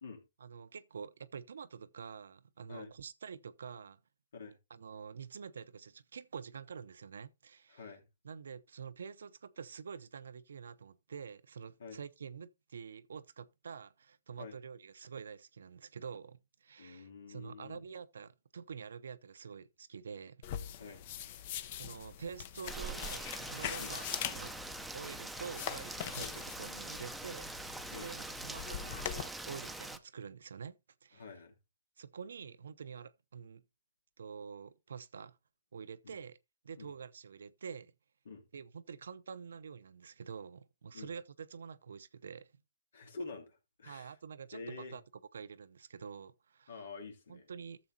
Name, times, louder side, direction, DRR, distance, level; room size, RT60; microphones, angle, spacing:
voice 1, 0.4-4.0 4.7-7.8 8.2-20.5 21.8-24.0 24.3-24.5 24.9-27.5 27.9-31.2 32.0-33.6 34.2-35.4 35.7-36.4 36.6-37.9 38.5-42.5 43.8-45.0 45.3-46.8 47.3-47.8, right 6 dB, 80° right, 0.6 m, -47 dB
voice 2, 7.7-8.0 11.8-12.0 14.4-14.6 16.8-17.8 20.7-21.0 23.8-24.0 26.2-26.4 27.9-28.1 31.1-31.5 36.0-36.2 36.8-36.9 38.2-38.4 40.9-41.1 42.9-44.2 44.5-45.0 46.7-47.5, left 4 dB, 75° left, 2.9 m, -47 dB
sound 1, 20.4-29.2, left 10 dB, 45° left, 0.8 m, -43 dB
Rain, 22.7-30.0, right 2 dB, 5° right, 0.6 m, -43 dB
13.0 x 7.2 x 2.8 m
hypercardioid pair, 145°, 0 cm